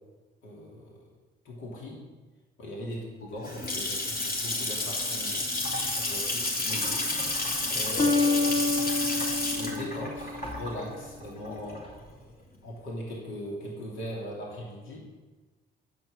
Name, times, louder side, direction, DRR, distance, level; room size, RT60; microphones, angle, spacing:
voice 1, 0.4-1.1 1.4-2.0 2.6-5.4 5.9-7.1 7.7-8.9 9.5-12.3 12.6-15.1, equal, 80° left, -2 dB, 3.0 m, -40 dB
Water tap faucet / Sink (filling or washing) / Splash splatter, 3.2-12.1, left 2 dB, 50° left, 3.3 m, -30 dB
sound 1, 6.8-7.3 8.0-10.9, left 3 dB, 30° left, 1.7 m, -28 dB
9.0 x 7.8 x 8.7 m, 1.2 s
cardioid pair, 90°, 20 cm